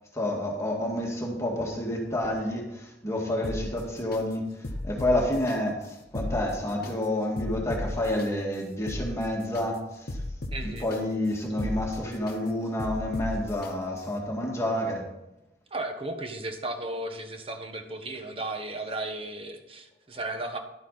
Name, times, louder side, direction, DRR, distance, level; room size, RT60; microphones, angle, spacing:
voice 1, 0.1-4.4 4.8-10.2 10.6-15.1, left 1 dB, 15° left, -1 dB, 1.9 m, -29 dB
sound 1, 3.4-4.2 4.6-5.6 6.0-6.9 7.4-8.3 8.7-9.6 10.1-11.0 11.4-12.4 12.8-13.7 14.2-14.3, left 1 dB, 55° left, 1.0 m, -35 dB
voice 2, 10.5-10.9 15.7-20.6, right 2 dB, 30° right, 5 dB, 1.3 m, -35 dB
11.5 x 8.2 x 4.1 m, 0.93 s
head